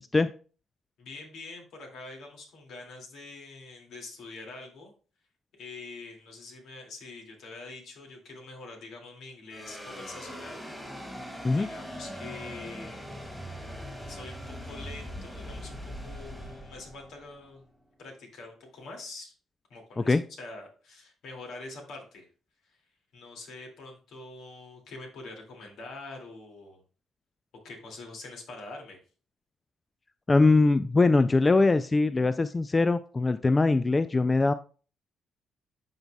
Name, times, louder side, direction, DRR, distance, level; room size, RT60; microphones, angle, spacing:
voice 1, 1.0-4.9 5.6-10.6 10.9-13.1 14.1-17.6 18.0-19.3 19.7-22.3 22.7-22.8 23.1-26.8 27.6-29.0, left 3 dB, 75° left, 1 dB, 2.2 m, -45 dB
sound 1, 9.5-18.0, equal, 5° left, 1.9 m, -41 dB
voice 2, 30.3-34.5, left 3 dB, 25° left, 12 dB, 0.3 m, -22 dB
12.0 x 4.0 x 2.2 m, 0.37 s
cardioid pair, 90°, 0 cm